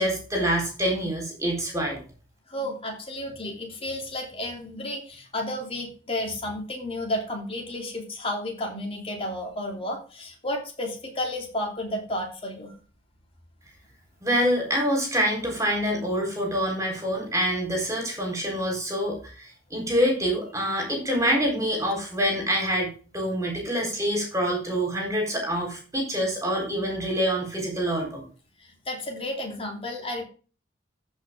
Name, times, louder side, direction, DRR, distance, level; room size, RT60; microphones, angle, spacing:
voice 1, 0.0-2.0 14.2-28.2, equal, 15° right, 0 dB, 4.1 m, -26 dB
voice 2, 2.5-12.7 28.6-30.2, left 1 dB, 30° left, 1 dB, 3.0 m, -32 dB
14.0 x 5.7 x 3.7 m, 0.37 s
head